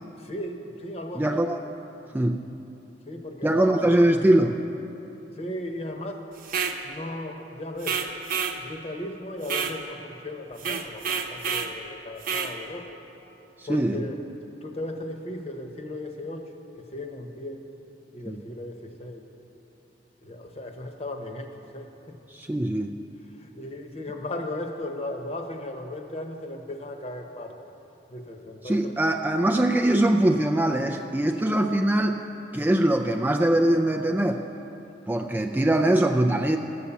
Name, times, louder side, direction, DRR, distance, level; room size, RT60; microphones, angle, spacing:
voice 1, 0.2-1.4 3.1-3.9 5.4-6.4 6.8-8.1 8.6-13.0 13.7-14.2 14.6-16.5 16.8-17.7 18.1-19.2 20.2-22.2 23.3-27.7 28.1-29.0, left 1 dB, 35° left, 4 dB, 1.0 m, -36 dB
voice 2, 1.1-1.6 2.1-2.4 3.4-4.6 13.6-14.0 18.3-18.4 22.3-22.9 28.6-32.2 32.5-34.4 35.1-36.6, right 1 dB, 10° right, 4 dB, 0.4 m, -22 dB
sound 1, 6.4-6.8 7.8-8.6 9.4-9.8 10.6-11.7 12.2-12.5, right 6 dB, 50° right, 0.8 m, -28 dB
13.5 x 8.6 x 7.0 m, 3.0 s
head